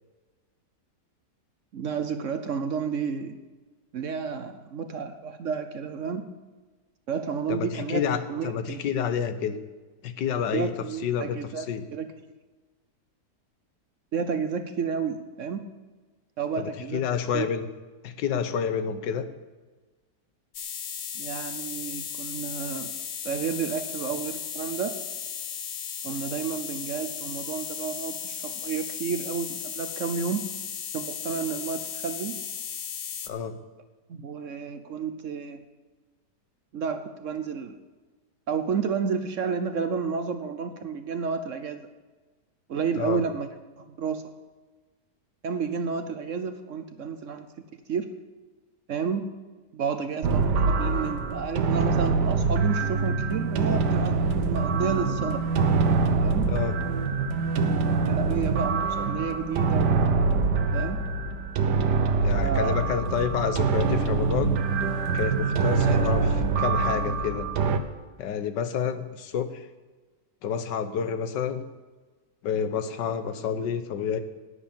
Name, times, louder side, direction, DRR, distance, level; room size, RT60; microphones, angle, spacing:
voice 1, 1.7-3.4 3.9-6.3 7.1-8.0 8.3-8.8 10.5-11.7 11.9-12.1 14.1-15.7 16.4-17.0 17.3-17.5 21.1-22.9 23.2-25.0 26.0-30.5 30.9-32.4 34.1-35.6 36.7-37.8 38.5-41.9 42.7-43.5 43.8-44.3 45.4-48.1 48.9-49.3 49.7-55.4 56.2-56.5 58.1-59.9 60.7-61.0 62.3-62.8 65.8-66.0, right 6 dB, 60° right, 9 dB, 0.9 m, -31 dB
voice 2, 7.5-9.6 10.0-10.7 11.0-11.8 16.6-17.7 18.0-19.2 33.3-33.5 43.0-43.2 56.5-56.7 62.2-64.5 65.1-67.5 68.2-69.7 70.4-71.6 72.4-74.2, left 7 dB, 90° left, 10 dB, 1.6 m, -29 dB
sound 1, 20.5-33.3, left 7 dB, 50° left, 1.1 m, -35 dB
sound 2, 50.2-67.8, right 4 dB, 75° right, 1.4 m, -24 dB
11.5 x 9.8 x 7.0 m, 1.3 s
omnidirectional pair, 1.8 m